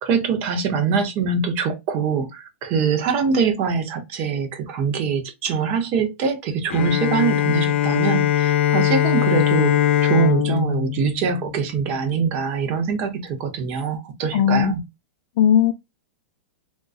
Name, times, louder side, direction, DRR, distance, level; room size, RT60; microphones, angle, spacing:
voice 1, 0.0-14.8, right 6 dB, 30° right, 0.6 m, -23 dB
Bowed string instrument, 6.7-12.2, left 11 dB, 85° left, 0.6 m, -21 dB
voice 2, 14.3-14.7 15.4-15.7, left 9 dB, 35° left, 0.3 m, -17 dB
3.6 x 2.6 x 2.3 m
supercardioid pair, 170°, 6 cm